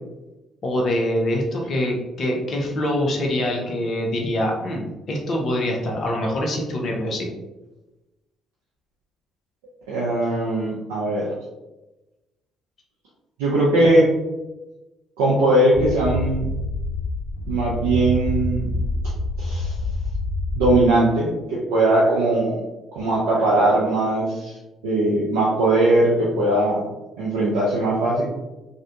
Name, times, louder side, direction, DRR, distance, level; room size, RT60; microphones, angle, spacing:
voice 1, 0.6-7.3, left 1 dB, 50° left, 0 dB, 0.6 m, -24 dB
voice 2, 9.9-11.3 13.4-14.1 15.2-16.5 17.5-18.8 19.4-19.8 20.6-22.6 22.9-24.6 24.8-26.8 27.2-28.3, right 1 dB, 80° right, -6 dB, 0.4 m, -20 dB
sound 1, 15.7-20.8, left 1 dB, 25° left, 1.3 m, -26 dB
2.6 x 2.1 x 2.6 m, 1.1 s
hypercardioid pair, 50°, 0 cm